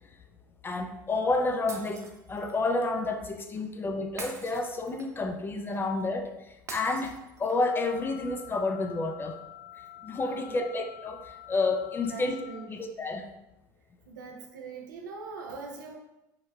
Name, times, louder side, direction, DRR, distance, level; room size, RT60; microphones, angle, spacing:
voice 1, 0.6-6.3 6.7-9.4 10.0-11.2 11.5-12.4 12.7-13.3, left 3 dB, 20° left, 6 dB, 0.4 m, -30 dB
Shatter, 1.7-2.6 4.2-5.3 6.7-7.7, right 3 dB, 30° right, 0.5 m, -43 dB
sound 1, 7.6-12.6, left 12 dB, 45° right, 0.9 m, -48 dB
voice 2, 10.3-10.6 12.0-12.7 14.1-16.0, right 4 dB, 85° right, 2 dB, 0.6 m, -42 dB
4.6 x 2.1 x 2.3 m, 0.94 s
hypercardioid pair, 75°, 10 cm